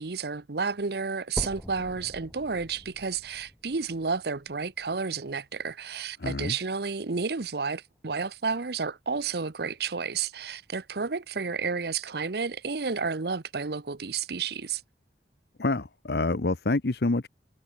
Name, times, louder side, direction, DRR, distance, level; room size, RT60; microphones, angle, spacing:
voice 1, 0.0-14.8, right 5 dB, 65° right, 0.9 m, -31 dB
sound 1, 1.4-5.4 5.9-6.0 6.6-6.7 7.0-7.1 8.0-8.1, equal, 5° left, 0.5 m, -42 dB
voice 2, 6.2-6.5 15.6-17.3, left 2 dB, 65° left, 0.9 m, -27 dB
head